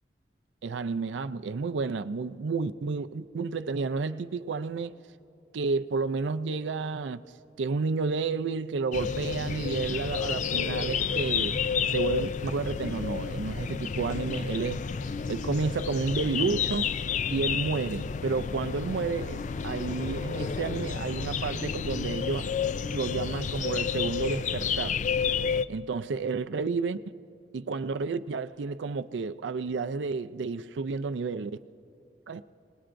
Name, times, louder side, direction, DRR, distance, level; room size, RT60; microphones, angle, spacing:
voice 1, 0.6-5.0 5.5-7.2 7.6-11.6 11.9-14.9 15.3-16.9 17.3-22.5 22.9-25.0 25.7-27.0 27.5-31.5 32.3-32.4, right 4 dB, 85° right, 0.4 m, -31 dB
sound 1, 8.9-25.6, left 6 dB, 45° left, 0.3 m, -31 dB
29.5 x 19.5 x 2.6 m
head